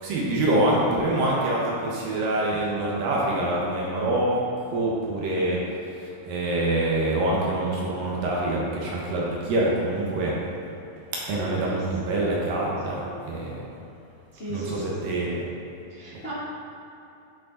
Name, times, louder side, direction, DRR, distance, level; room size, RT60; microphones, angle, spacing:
voice 1, 0.0-4.4 4.6-10.3 11.3-13.6 14.5-15.5, right 1 dB, 65° right, -4 dB, 2.5 m, -25 dB
voice 2, 11.4-11.8 12.0-12.3 12.9-13.1 14.3-14.8 15.1-15.3 15.9-16.3, right 1 dB, 45° left, -11 dB, 0.7 m, -37 dB
10.5 x 6.7 x 4.0 m, 2.8 s
omnidirectional pair, 4.9 m